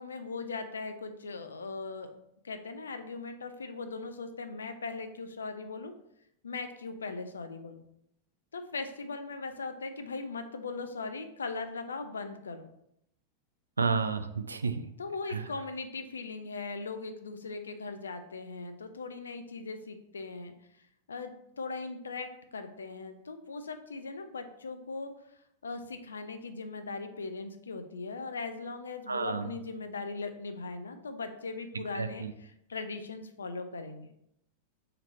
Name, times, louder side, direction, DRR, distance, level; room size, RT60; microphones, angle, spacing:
voice 1, 0.0-2.1 2.4-5.9 6.4-7.8 8.5-12.7 15.0-20.5 21.1-25.1 25.6-34.1, left 3 dB, 70° left, 7 dB, 0.4 m, -39 dB
voice 2, 13.8-14.8 15.3-15.5 29.1-29.5 31.9-32.3, right 5 dB, 75° right, 9 dB, 0.3 m, -31 dB
3.8 x 2.9 x 4.3 m, 0.77 s
figure-of-eight pair, 90°, 0 cm